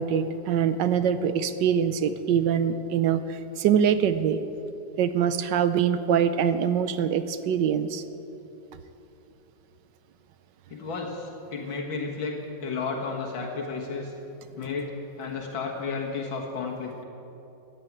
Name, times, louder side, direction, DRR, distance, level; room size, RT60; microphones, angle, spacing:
voice 1, 0.0-4.4 5.0-8.0, right 8 dB, 75° right, 11 dB, 1.3 m, -24 dB
voice 2, 10.7-14.1 14.5-14.9 15.2-16.9, left 4 dB, 90° left, -1 dB, 2.3 m, -32 dB
14.5 x 8.8 x 9.4 m, 2.9 s
omnidirectional pair, 2.1 m